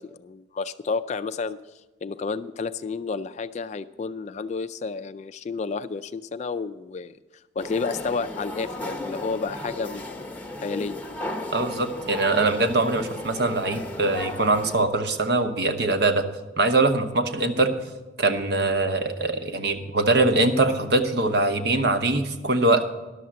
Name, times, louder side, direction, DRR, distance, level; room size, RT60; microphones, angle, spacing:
voice 1, 0.0-1.6 2.0-7.2 7.6-10.3 10.6-11.0, left 4 dB, 35° left, 12 dB, 0.3 m, -31 dB
sound 1, 7.6-14.8, left 2 dB, 10° left, 0.8 m, -35 dB
voice 2, 11.5-16.2 16.6-17.7 18.2-22.9, right 2 dB, 55° right, 8 dB, 0.9 m, -22 dB
11.5 x 6.9 x 7.4 m, 1.1 s
head